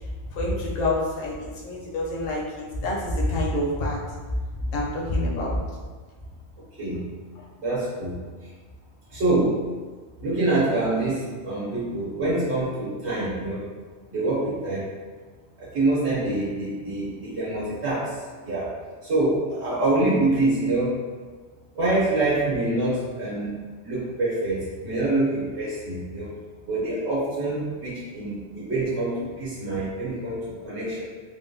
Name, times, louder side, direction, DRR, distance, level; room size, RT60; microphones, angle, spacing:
voice 1, 0.3-4.0 4.7-5.6, left 1 dB, 60° left, -4 dB, 0.8 m, -27 dB
voice 2, 7.6-8.2 9.1-9.5 10.2-13.6 14.1-14.9 15.6-18.2 18.4-18.7 19.0-21.0 21.7-23.6 23.8-26.3 26.7-31.0, right 2 dB, 80° right, -9 dB, 1.2 m, -25 dB
3.6 x 2.2 x 2.7 m, 1.5 s
omnidirectional pair, 1.1 m